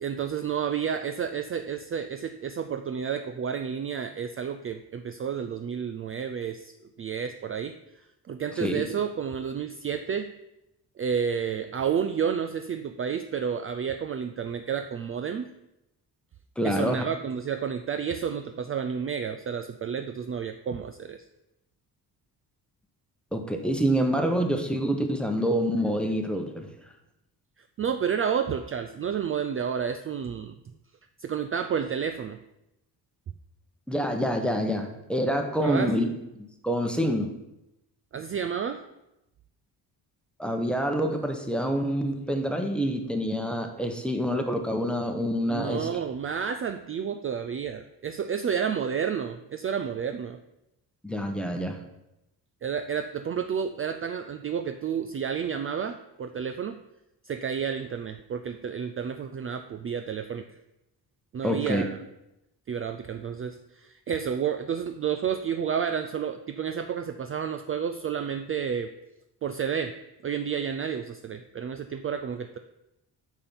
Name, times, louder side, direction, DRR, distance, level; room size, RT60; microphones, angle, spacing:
voice 1, 0.0-6.7 7.0-7.8 8.3-10.3 11.0-15.5 16.6-21.2 27.8-30.6 31.2-32.4 35.6-35.9 38.1-38.9 45.5-50.4 52.6-56.8 57.2-60.5 61.3-62.0 62.7-68.9 69.4-70.0 70.2-72.6, right 7 dB, 35° right, 8 dB, 0.4 m, -30 dB
voice 2, 16.6-17.0 23.3-26.7 33.9-36.1 36.4-37.3 40.4-46.0 51.0-51.8 61.4-61.8, equal, ahead, 4 dB, 1.0 m, -27 dB
8.9 x 4.4 x 7.1 m, 0.89 s
cardioid pair, 145°, 39 cm